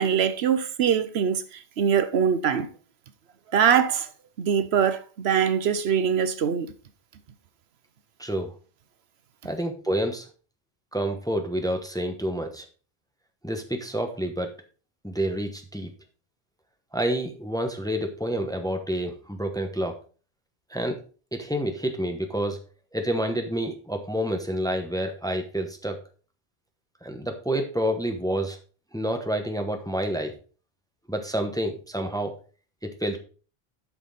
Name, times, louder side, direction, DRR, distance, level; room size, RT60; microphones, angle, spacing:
voice 1, 0.0-2.7 3.5-4.1 4.4-6.7, right 8 dB, 80° right, 1.0 m, -23 dB
voice 2, 8.2-8.6 9.4-10.3 10.9-12.6 13.4-14.5 15.0-15.9 16.9-20.0 20.7-21.0 21.3-22.6 22.9-26.0 27.0-28.6 28.9-30.3 31.1-32.3 32.8-33.2, right 1 dB, 5° left, 0.9 m, -28 dB
8.2 x 6.0 x 4.1 m
omnidirectional pair, 1.1 m